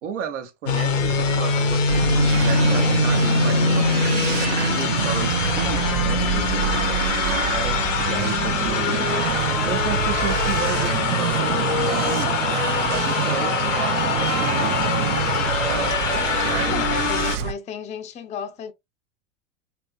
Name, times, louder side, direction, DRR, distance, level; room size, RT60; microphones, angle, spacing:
voice 1, 0.0-1.8 2.4-7.8 8.1-17.3, right 6 dB, 75° right, 1.0 m, -33 dB
sound 1, 0.7-17.4, left 5 dB, 90° left, 0.8 m, -23 dB
sound 2, 1.9-17.5, right 10 dB, 55° right, 0.6 m, -26 dB
voice 2, 10.0-10.3 16.7-18.7, left 7 dB, 20° left, 0.5 m, -34 dB
3.4 x 2.8 x 2.4 m
hypercardioid pair, 95°, 37 cm